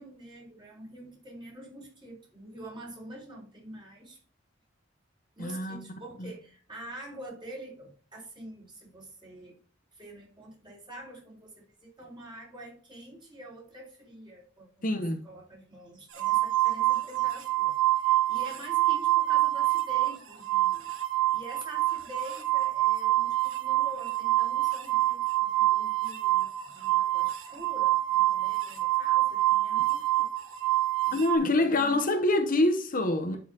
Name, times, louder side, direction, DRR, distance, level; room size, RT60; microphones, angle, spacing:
voice 1, 0.0-4.2 5.4-9.6 9.9-11.5 11.8-20.9 21.3-30.3 30.6-32.0, right 1 dB, 25° right, 4.1 m, -46 dB
voice 2, 5.4-5.9 6.2-6.3 14.8-15.2 31.1-33.4, left 2 dB, 45° left, 1.0 m, -26 dB
sound 1, 16.2-20.1 20.4-31.4, right 16 dB, 85° right, 1.4 m, -26 dB
11.5 x 5.5 x 2.9 m
head